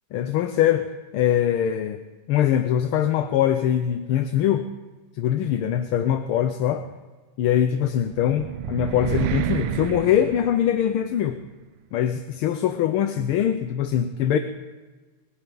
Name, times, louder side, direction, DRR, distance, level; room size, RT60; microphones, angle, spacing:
voice 1, 0.1-2.0 2.3-4.7 5.1-6.9 7.4-11.4 11.9-14.4, left 10 dB, 75° left, 8 dB, 1.6 m, -22 dB
sound 1, 7.7-11.2, right 12 dB, 75° right, 1.3 m, -29 dB
21.0 x 14.5 x 3.9 m, 1.3 s
omnidirectional pair, 2.4 m